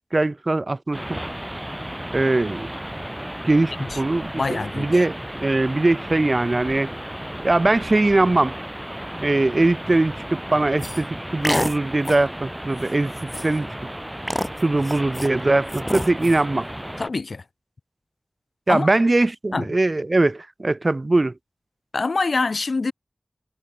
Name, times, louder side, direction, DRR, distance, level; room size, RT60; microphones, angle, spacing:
voice 1, 0.1-1.2 2.1-2.7 3.4-6.9 7.4-8.6 9.2-13.1 13.4-13.7 14.6-16.7 18.7-21.3, right 2 dB, 45° right, 0.7 m, -21 dB
sound 1, 0.9-17.1, right 1 dB, 10° right, 5.4 m, -34 dB
voice 2, 4.3-5.0 17.0-17.4 18.7-18.9 19.5-19.7 21.9-22.9, left 3 dB, 80° left, 1.4 m, -25 dB
sound 2, 10.8-11.0 11.4-11.8 12.0-12.3 12.8-12.9 13.2-13.6 14.3-15.3 15.7-16.4, equal, 10° left, 0.3 m, -27 dB
wide cardioid pair, 55°, 0 cm